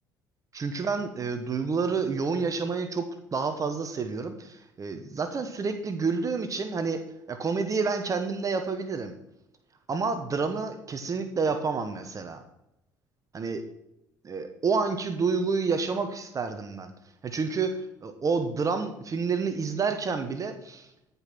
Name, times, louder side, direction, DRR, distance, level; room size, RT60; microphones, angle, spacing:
voice 1, 0.5-7.0 7.3-9.1 9.9-12.4 13.3-13.6 14.2-16.9 17.2-20.9, right 4 dB, 40° right, 8 dB, 1.2 m, -29 dB
14.0 x 5.5 x 6.2 m, 0.84 s
hypercardioid pair, 60°, 9 cm